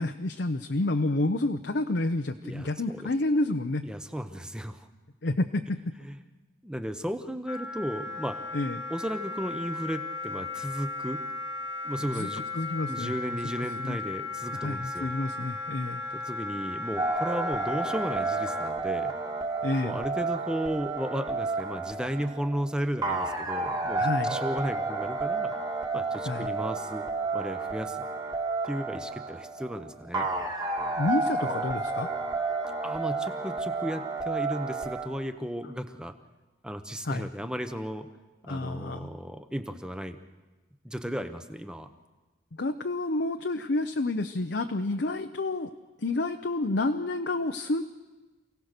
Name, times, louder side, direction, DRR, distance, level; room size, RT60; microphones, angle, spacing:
voice 1, 0.0-3.9 5.2-5.9 8.5-8.8 12.0-13.1 13.6-14.0 14.5-16.0 19.6-20.0 24.0-24.4 26.3-26.5 31.0-32.1 37.0-37.3 38.5-39.1 42.6-45.7 46.0-47.8, left 2 dB, 60° left, 7 dB, 0.7 m, -29 dB
voice 2, 2.4-3.1 3.8-4.9 6.0-6.2 6.6-8.4 8.9-11.2 11.8-12.5 12.9-15.1 16.1-19.1 19.8-25.5 25.9-27.1 27.3-28.1 28.6-30.3 32.8-36.1 36.6-38.1 38.4-40.2 40.8-41.9, equal, 5° right, 8 dB, 0.9 m, -34 dB
Wind instrument woodwind instrument, 7.5-18.7, left 2 dB, 80° left, 1.6 m, -36 dB
sound 1, 17.0-35.1, right 3 dB, 20° right, 2.0 m, -31 dB
28.0 x 17.5 x 6.7 m, 1.2 s
head